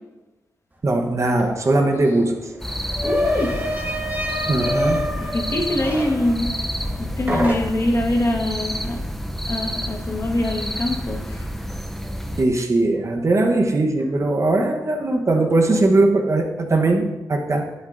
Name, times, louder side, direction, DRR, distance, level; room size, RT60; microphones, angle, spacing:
voice 1, 0.8-2.5 4.5-5.1 12.4-17.7, right 2 dB, 50° right, 2 dB, 1.2 m, -20 dB
sound 1, 1.4-1.5 1.7-7.0 7.3-8.0, equal, 25° right, 1.7 m, -27 dB
sound 2, 2.6-12.4, equal, 5° left, 0.7 m, -29 dB
voice 2, 3.0-3.5 5.2-6.5 7.0-9.0 9.5-11.5, left 1 dB, 45° left, -1 dB, 1.7 m, -24 dB
11.5 x 7.7 x 2.7 m, 1.1 s
cardioid pair, 70°, 7 cm